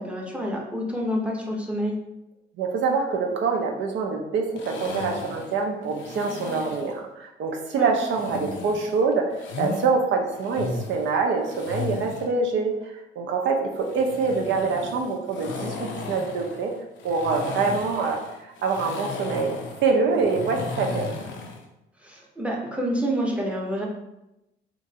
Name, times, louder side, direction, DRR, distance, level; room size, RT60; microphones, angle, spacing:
voice 1, 0.0-2.0 7.7-7.9 22.0-23.8, equal, 5° right, -2 dB, 0.7 m, -28 dB
voice 2, 2.6-16.7 17.0-19.6 19.8-21.1, right 4 dB, 70° right, 2 dB, 0.5 m, -25 dB
sound 1, 4.6-7.0 8.0-9.9 10.3-12.3 13.7-21.6, left 4 dB, 75° left, 0.5 m, -35 dB
2.9 x 2.5 x 2.7 m, 0.90 s
cardioid pair, 90°, 20 cm